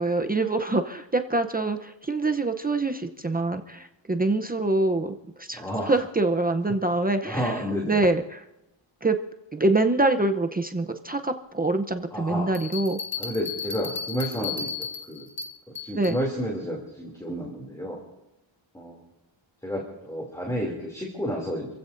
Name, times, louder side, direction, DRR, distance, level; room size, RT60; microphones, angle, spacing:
voice 1, 0.0-8.4 9.0-9.2 9.5-13.0 16.0-16.2, right 2 dB, 20° right, 6 dB, 0.7 m, -25 dB
voice 2, 5.6-6.0 7.2-8.0 12.1-12.5 13.2-15.3 15.8-18.0 18.7-19.0 19.6-21.8, equal, 5° left, -1 dB, 2.8 m, -31 dB
sound 1, 12.5-16.2, left 5 dB, 25° left, 1.4 m, -34 dB
29.5 x 15.5 x 2.6 m, 0.90 s
wide cardioid pair, 170°, 50 cm